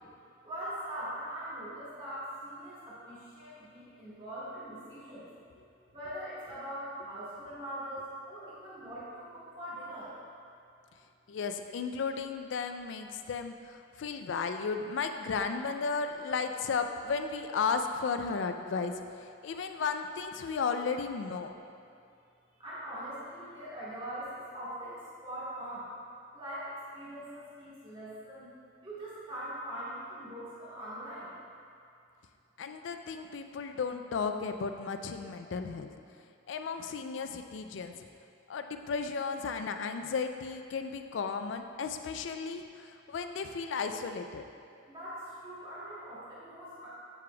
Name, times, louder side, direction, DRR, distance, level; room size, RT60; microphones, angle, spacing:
voice 1, 0.4-5.3 5.9-10.1 22.6-25.9 26.3-28.5 28.8-31.4 44.9-46.9, right 1 dB, 25° right, -10 dB, 1.5 m, -42 dB
voice 2, 11.3-21.5 32.6-35.9 36.5-37.9 38.5-44.4, left 5 dB, 65° left, 7 dB, 0.3 m, -34 dB
8.3 x 4.9 x 2.3 m, 2.5 s
head